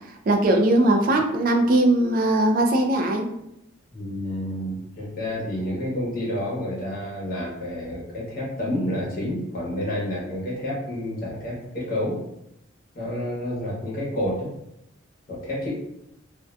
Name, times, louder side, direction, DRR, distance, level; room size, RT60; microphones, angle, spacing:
voice 1, 0.3-3.3, right 1 dB, 45° right, 3 dB, 0.3 m, -20 dB
voice 2, 3.9-12.2 12.9-14.5 15.3-15.8, left 1 dB, 45° left, -6 dB, 1.0 m, -29 dB
2.5 x 2.1 x 2.4 m, 0.80 s
head